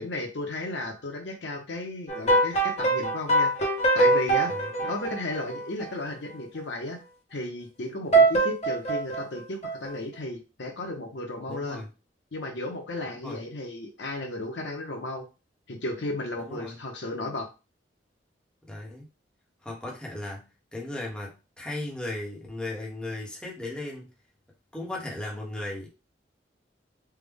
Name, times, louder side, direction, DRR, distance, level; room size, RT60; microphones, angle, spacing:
voice 1, 0.0-4.6 4.8-7.0 7.3-11.8 12.3-15.3 15.7-17.5, left 2 dB, 75° left, 2 dB, 0.8 m, -34 dB
sound 1, 2.1-5.9 8.1-10.0, right 2 dB, 40° left, 1.0 m, -23 dB
voice 2, 11.5-11.9 13.2-13.4 16.4-16.8 18.7-19.0 19.6-24.1 24.7-25.9, left 2 dB, 5° left, -3 dB, 0.9 m, -36 dB
3.4 x 2.1 x 3.4 m, 0.30 s
head